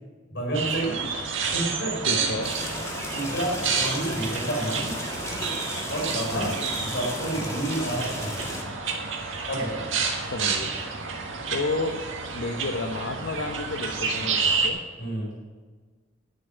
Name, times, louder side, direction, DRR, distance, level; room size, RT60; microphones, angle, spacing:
voice 1, 0.3-1.0 1.5-2.2 3.1-4.9 5.9-8.7 9.5-9.9 15.0-15.3, right 1 dB, 65° left, -1 dB, 4.3 m, -30 dB
sound 1, 0.5-14.7, right 5 dB, 85° right, 1.7 m, -30 dB
voice 2, 2.1-2.5 6.3-6.8 10.2-10.7 11.2-12.0 12.3-14.8, left 2 dB, 85° left, 3 dB, 0.9 m, -31 dB
sound 2, 2.4-8.6, left 1 dB, 15° left, 1.8 m, -35 dB
11.0 x 6.8 x 7.8 m, 1.4 s
head